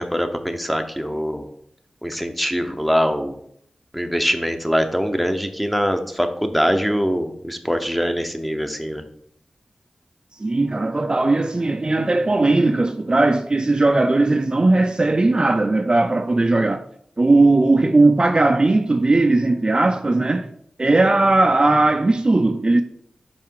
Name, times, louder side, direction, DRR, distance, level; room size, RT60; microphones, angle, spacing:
voice 1, 0.0-1.5 2.0-3.4 3.9-9.0, equal, ahead, 0.8 m, -23 dB
voice 2, 10.4-16.8 17.2-20.5 20.8-22.8, right 2 dB, 35° right, 0.4 m, -18 dB
5.7 x 4.3 x 4.7 m
cardioid pair, 45°, 2 cm